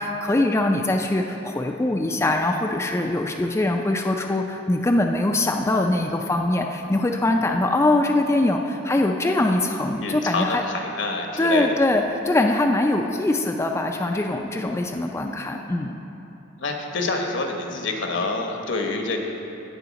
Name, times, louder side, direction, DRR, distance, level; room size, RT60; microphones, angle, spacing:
voice 1, 0.0-10.6 11.4-16.0, left 2 dB, 15° left, 2 dB, 0.3 m, -22 dB
voice 2, 10.0-11.7 16.6-19.2, left 3 dB, 70° left, 2 dB, 1.1 m, -27 dB
16.5 x 5.7 x 4.1 m, 2.9 s
head